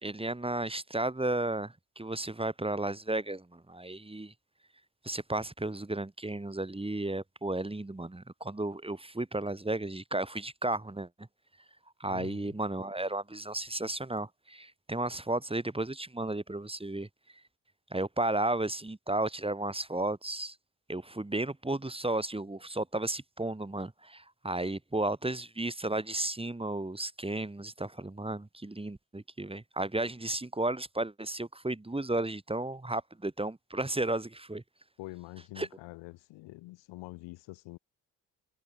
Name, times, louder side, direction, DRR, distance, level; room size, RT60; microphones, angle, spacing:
voice 1, 0.0-4.3 5.0-11.1 12.0-17.1 17.9-20.5 20.9-34.6 35.6-35.7, right 2 dB, 10° right, 2.4 m, -33 dB
voice 2, 12.1-12.6 35.0-37.8, left 20 dB, 75° left, 2.0 m, -46 dB
hypercardioid pair, 50°, 44 cm